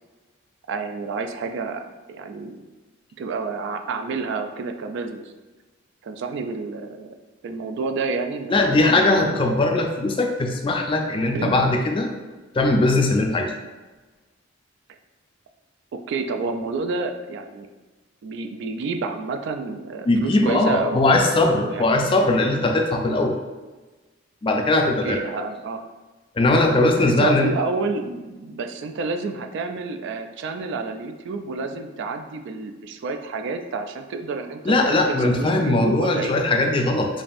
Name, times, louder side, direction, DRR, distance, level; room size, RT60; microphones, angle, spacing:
voice 1, 0.7-2.6 3.2-5.3 6.0-7.1 7.4-9.5 11.3-11.5 15.9-17.7 18.2-22.1 23.0-23.2 25.0-25.8 27.0-34.7 35.2-36.3, right 4 dB, 65° right, 6 dB, 0.3 m, -29 dB
voice 2, 8.5-12.1 12.5-13.5 20.1-23.4 24.4-25.2 26.4-27.5 34.6-37.2, left 2 dB, 25° left, 3 dB, 0.4 m, -20 dB
5.2 x 2.5 x 2.5 m, 1.2 s
head